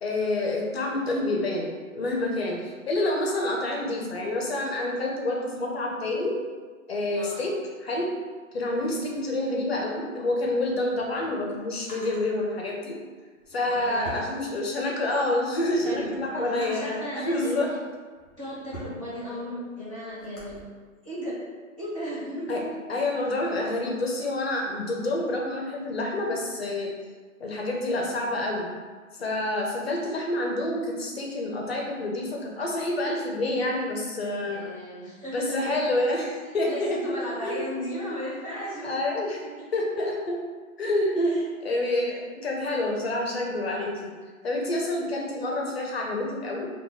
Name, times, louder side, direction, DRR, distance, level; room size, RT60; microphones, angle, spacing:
voice 1, 0.0-6.4 6.9-7.5 7.8-8.1 8.5-13.0 13.5-17.7 22.5-22.6 22.9-26.9 27.4-28.7 29.2-34.7 35.3-37.0 37.4-37.7 38.8-39.4 39.7-40.4 40.8-44.1 44.4-46.7, left 1 dB, 50° left, -1 dB, 0.5 m, -28 dB
Drawer open or close, 10.7-12.3 13.3-15.0 15.4-17.1 17.8-20.6, right 1 dB, 20° left, 1.1 m, -45 dB
voice 2, 13.6-14.1 15.7-17.8 18.4-20.6 21.0-21.4 21.8-22.7 34.4-35.7 36.4-39.1 39.4-39.7 41.2-41.8, equal, 25° right, -9 dB, 0.5 m, -36 dB
2.9 x 2.3 x 3.8 m, 1.5 s
hypercardioid pair, 175°, 41 cm